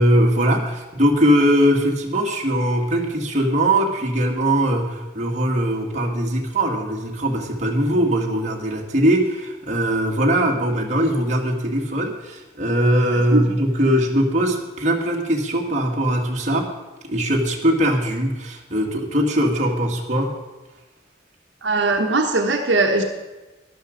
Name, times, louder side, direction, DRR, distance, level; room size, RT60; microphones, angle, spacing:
voice 1, 0.0-16.7 17.0-20.4, equal, 35° right, 0 dB, 1.7 m, -20 dB
voice 2, 21.6-23.0, right 2 dB, 75° right, 3 dB, 1.1 m, -19 dB
12.5 x 11.5 x 5.1 m, 1.1 s
head